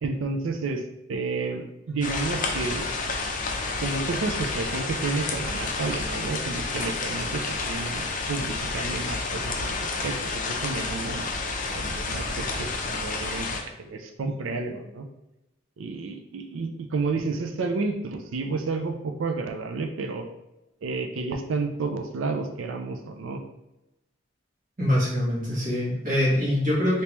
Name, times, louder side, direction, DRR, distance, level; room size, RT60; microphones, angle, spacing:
voice 1, 0.0-0.8 1.1-2.9 3.8-15.1 15.8-20.2 20.8-23.4, right 3 dB, 85° right, 5 dB, 0.4 m, -31 dB
sound 1, 2.0-13.6, left 3 dB, 45° left, 0.5 m, -30 dB
voice 2, 24.8-27.0, left 1 dB, 45° right, -7 dB, 1.5 m, -24 dB
3.3 x 2.9 x 3.0 m, 0.93 s
head